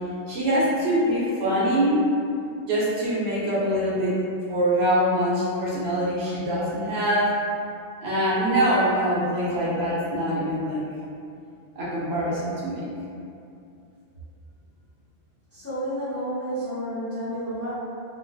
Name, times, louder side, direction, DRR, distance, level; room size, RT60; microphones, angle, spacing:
voice 1, 0.3-2.1 2.6-4.2 4.5-7.3 8.0-10.9 11.8-12.9, equal, 70° right, -7 dB, 0.9 m, -24 dB
voice 2, 15.5-17.7, equal, 20° left, -13 dB, 0.5 m, -30 dB
2.3 x 2.1 x 2.6 m, 2.5 s
omnidirectional pair, 1.2 m